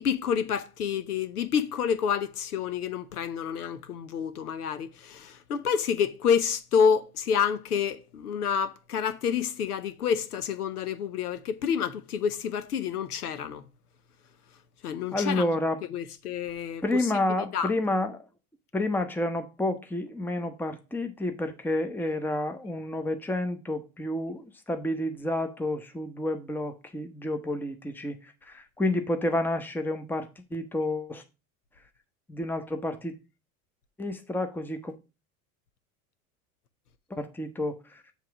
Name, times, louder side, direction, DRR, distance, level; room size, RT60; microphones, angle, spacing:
voice 1, 0.0-13.6 14.8-15.4 15.9-17.1 17.4-17.7, left 7 dB, 90° left, 0.8 m, -28 dB
voice 2, 15.1-15.8 16.8-18.2 18.7-28.2 28.5-31.2 32.3-33.1 34.0-34.9 37.1-37.8, left 1 dB, 5° left, 0.9 m, -30 dB
7.5 x 3.6 x 5.9 m
hypercardioid pair, 80°, 44 cm